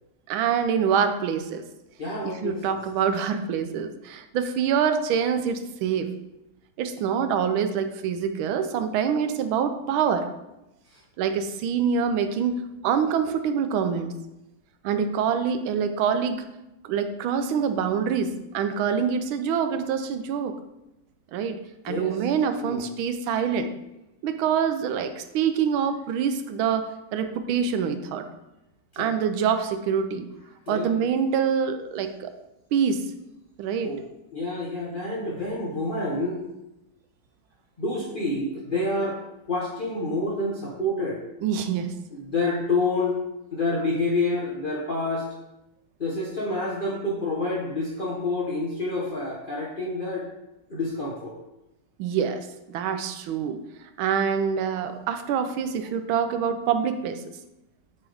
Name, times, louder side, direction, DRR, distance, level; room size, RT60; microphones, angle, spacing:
voice 1, 0.3-1.6 2.2-6.1 6.8-10.3 11.2-14.1 14.8-16.4 16.8-20.5 21.3-21.6 21.8-23.7 24.2-28.3 29.0-30.3 30.7-32.3 32.7-33.0 33.6-33.9 41.4-41.9 52.0-53.6 54.0-57.2, right 7 dB, 90° right, 8 dB, 1.4 m, -25 dB
voice 2, 2.0-2.6 21.9-22.2 22.4-22.8 28.9-29.1 30.7-31.0 33.8-34.0 34.3-36.4 37.8-39.2 39.5-41.2 42.1-43.2 43.5-45.3 46.0-50.3 50.7-51.3, left 2 dB, 45° left, -5 dB, 0.7 m, -28 dB
8.3 x 3.8 x 3.4 m, 0.92 s
omnidirectional pair, 2.2 m